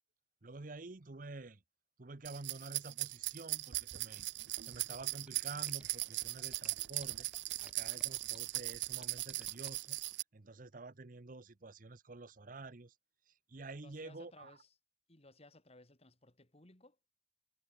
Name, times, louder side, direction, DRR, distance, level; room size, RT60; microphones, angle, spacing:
voice 1, 0.4-1.6 2.0-4.3 4.6-7.3 7.6-10.0 10.3-12.9 13.3-14.6, right 3 dB, 50° right, 0.9 m, -49 dB
sound 1, 2.2-10.2, right 19 dB, 85° right, 0.6 m, -39 dB
sound 2, 4.7-9.7, right 1 dB, 5° right, 6.2 m, -58 dB
voice 2, 13.8-14.8 15.1-17.0, left 2 dB, 35° left, 2.7 m, -60 dB
head